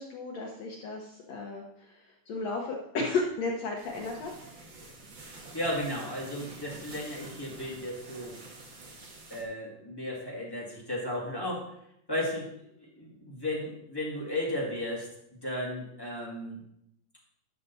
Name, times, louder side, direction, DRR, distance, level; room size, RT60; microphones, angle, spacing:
voice 1, 0.0-4.3, left 3 dB, 70° left, -1 dB, 1.6 m, -34 dB
sound 1, 3.8-9.4, right 3 dB, 70° right, 1.1 m, -48 dB
voice 2, 5.2-8.4 9.3-11.6 12.1-16.6, left 1 dB, 10° left, -5 dB, 1.3 m, -35 dB
11.0 x 6.6 x 4.1 m, 0.77 s
omnidirectional pair, 4.3 m